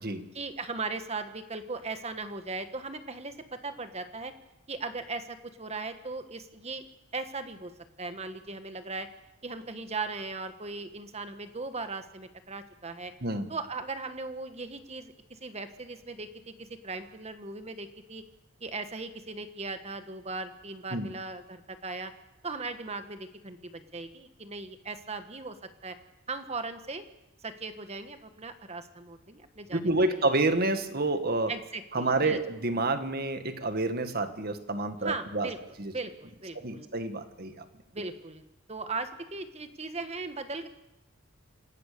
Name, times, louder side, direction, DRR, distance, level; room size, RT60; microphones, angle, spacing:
voice 1, 0.3-4.3 4.7-6.8 7.1-7.7 8.0-9.1 9.4-13.1 13.5-18.2 18.6-22.1 22.4-25.6 25.8-25.9 26.3-27.0 27.4-29.9 31.5-32.4 35.0-35.6 35.9-36.9 37.9-38.4 38.7-40.7, right 3 dB, 30° right, 9 dB, 1.4 m, -38 dB
voice 2, 29.7-31.5 31.9-35.5 35.8-35.9 36.5-37.6, right 2 dB, 50° right, 8 dB, 1.8 m, -28 dB
27.0 x 17.5 x 6.8 m, 0.90 s
head